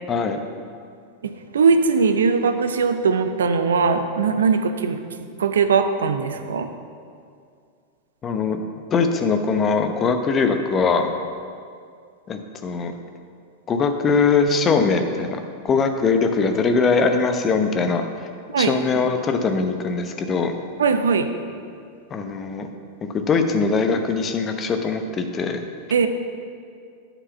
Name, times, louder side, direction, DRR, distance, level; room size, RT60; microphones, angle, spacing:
voice 1, 0.1-0.4 8.2-8.6 8.9-11.1 12.3-12.9 13.7-18.0 18.6-20.5 22.1-22.7 23.0-25.6, left 4 dB, 30° left, 6 dB, 0.8 m, -21 dB
voice 2, 1.5-5.0 5.4-6.7 18.5-18.7 20.8-21.3 25.9-26.1, right 5 dB, 75° right, 8 dB, 0.6 m, -20 dB
8.9 x 4.8 x 6.7 m, 2.3 s
figure-of-eight pair, 95°, 0 cm